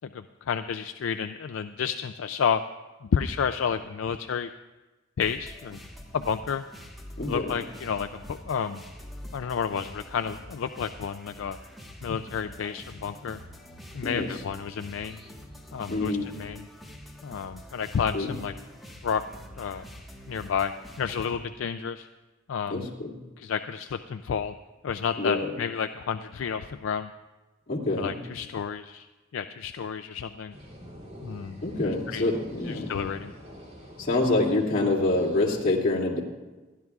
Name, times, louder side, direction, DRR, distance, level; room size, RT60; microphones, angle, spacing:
voice 1, 0.1-2.6 3.0-4.5 5.2-5.8 6.1-6.6 7.2-8.8 9.3-11.6 12.0-13.4 13.9-15.2 15.7-16.6 17.2-18.5 19.0-19.2 19.6-19.8 20.3-20.7 21.0-22.1 22.5-22.9 23.4-24.5 24.8-27.1 28.0-29.1 29.3-30.6 31.2-32.3 32.7-33.3, left 7 dB, 70° left, 8 dB, 0.4 m, -30 dB
sound 1, 5.2-21.3, equal, ahead, 1.3 m, -46 dB
voice 2, 7.2-7.6 14.0-14.3 15.9-16.3 18.1-18.4 22.7-23.1 25.2-25.5 27.7-28.2 31.6-32.9 34.0-36.2, left 2 dB, 45° left, -5 dB, 2.4 m, -26 dB
sound 2, 30.5-35.6, equal, 35° right, 2.8 m, -44 dB
27.5 x 10.5 x 2.4 m, 1.2 s
head